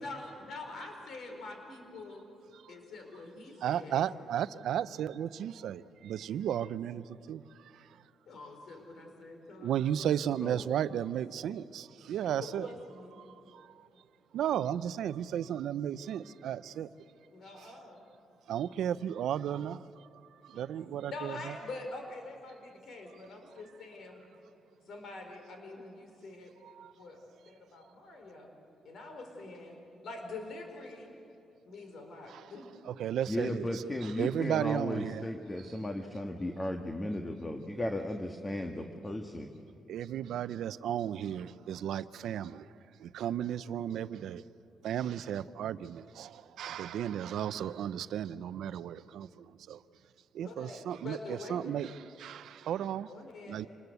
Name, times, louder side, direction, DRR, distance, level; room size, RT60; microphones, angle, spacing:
voice 1, 0.0-2.2 2.7-4.1 8.3-10.5 12.2-13.2 17.3-18.0 20.5-20.7 21.0-24.2 24.9-26.5 27.0-28.5 28.8-31.1 31.7-32.7 50.4-51.9 53.1-53.6, left 2 dB, 70° left, 4.6 m, -45 dB
voice 2, 3.6-7.9 9.6-12.7 13.2-13.9 14.3-16.9 17.6-17.7 18.5-20.1 20.4-21.5 26.6-26.9 32.3-32.5 32.8-35.3 39.9-42.7 43.0-44.4 44.8-49.8 50.3-53.1 53.5-53.7, right 10 dB, 85° right, 0.6 m, -34 dB
voice 3, 33.3-39.5, left 1 dB, 20° left, 1.5 m, -35 dB
27.0 x 20.5 x 8.1 m
cardioid pair, 100°, 0 cm